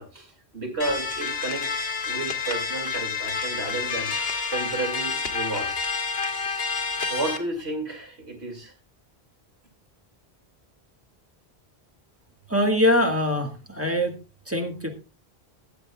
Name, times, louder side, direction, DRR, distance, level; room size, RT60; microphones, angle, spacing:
voice 1, 0.0-4.1 4.5-5.8 7.1-8.7, right 2 dB, 90° right, 2 dB, 2.9 m, -32 dB
sound 1, 0.8-7.4, left 5 dB, 70° left, 1.4 m, -29 dB
voice 2, 12.5-14.2 14.5-14.9, left 1 dB, 15° right, 2 dB, 1.7 m, -23 dB
21.5 x 7.9 x 2.4 m, 0.32 s
omnidirectional pair, 1.1 m